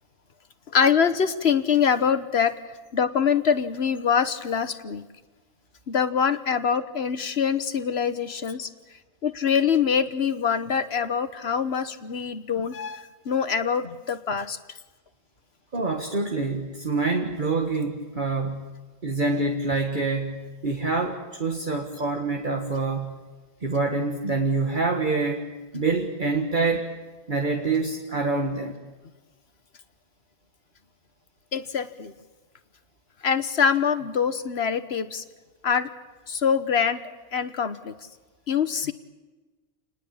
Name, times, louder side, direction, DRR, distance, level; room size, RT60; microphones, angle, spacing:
voice 1, 0.7-2.5 2.9-5.0 5.9-8.7 9.2-14.6 19.2-19.3 31.5-32.1 33.2-35.2 35.6-35.9 36.3-37.0 37.3-37.9 38.5-38.9, left 7 dB, 75° left, 11 dB, 1.4 m, -24 dB
voice 2, 15.7-18.7 19.0-23.1 23.6-25.5 25.7-26.9 27.3-28.8, right 3 dB, 50° right, 2 dB, 1.9 m, -26 dB
28.0 x 20.0 x 8.7 m, 1.2 s
omnidirectional pair, 1.1 m